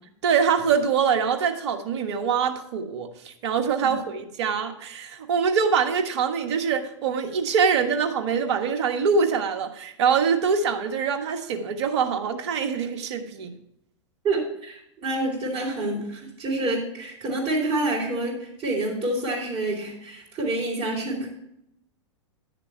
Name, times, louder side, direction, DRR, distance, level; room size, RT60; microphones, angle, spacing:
voice 1, 0.2-13.5, right 6 dB, 60° right, 6 dB, 1.4 m, -24 dB
voice 2, 14.2-21.3, right 2 dB, 35° right, -6 dB, 3.8 m, -28 dB
11.5 x 6.8 x 4.5 m, 0.76 s
hypercardioid pair, 100°, 16 cm